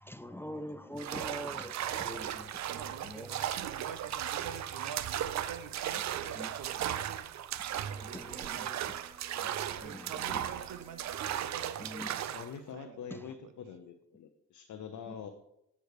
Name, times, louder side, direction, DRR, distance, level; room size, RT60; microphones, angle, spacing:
voice 1, 0.0-2.5 3.1-3.3 6.4-6.5 8.0-8.6 9.8-10.4 11.8-12.1, equal, 5° left, 0.3 m, -43 dB
sound 1, 1.0-12.5, right 11 dB, 55° right, 0.5 m, -36 dB
voice 2, 2.6-7.3 8.1-9.0 9.8-12.4 12.7-13.5, right 7 dB, 70° right, 0.8 m, -47 dB
Bowed string instrument, 7.5-11.7, right 3 dB, 20° right, 0.9 m, -58 dB
voice 3, 12.3-15.3, left 7 dB, 55° left, 0.6 m, -45 dB
8.0 x 3.2 x 4.8 m
supercardioid pair, 50°, 34 cm